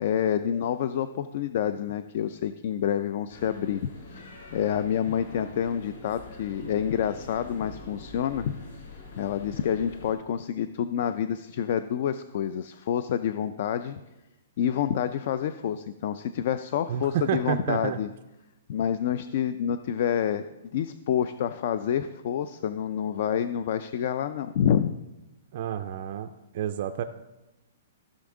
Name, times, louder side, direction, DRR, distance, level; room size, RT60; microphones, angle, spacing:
voice 1, 0.0-8.9 9.2-14.0 14.6-18.1 18.7-20.4 20.7-24.9, left 9 dB, 35° left, 12 dB, 0.3 m, -28 dB
sound 1, 3.3-10.1, left 2 dB, 75° left, 3.1 m, -44 dB
voice 2, 16.9-18.0 25.5-26.3 26.5-27.0, right 10 dB, 35° right, 7 dB, 0.4 m, -29 dB
15.0 x 6.1 x 3.7 m, 0.99 s
hypercardioid pair, 180°, 0 cm